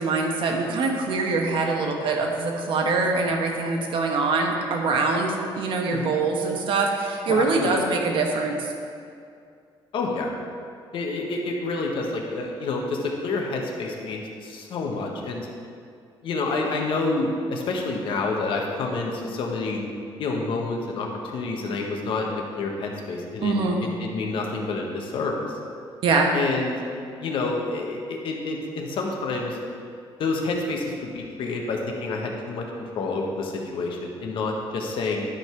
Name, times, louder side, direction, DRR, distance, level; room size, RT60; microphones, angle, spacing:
voice 1, 0.0-8.7 23.4-23.8 26.0-26.3, right 3 dB, 65° right, 2 dB, 1.2 m, -24 dB
voice 2, 7.3-7.8 9.9-10.3 10.9-15.5 16.2-19.8 20.2-23.5 23.8-25.6 26.3-26.8 27.2-29.6 30.2-35.3, left 3 dB, 65° left, 1 dB, 1.2 m, -28 dB
11.5 x 5.3 x 4.6 m, 2.3 s
cardioid pair, 145°, 9 cm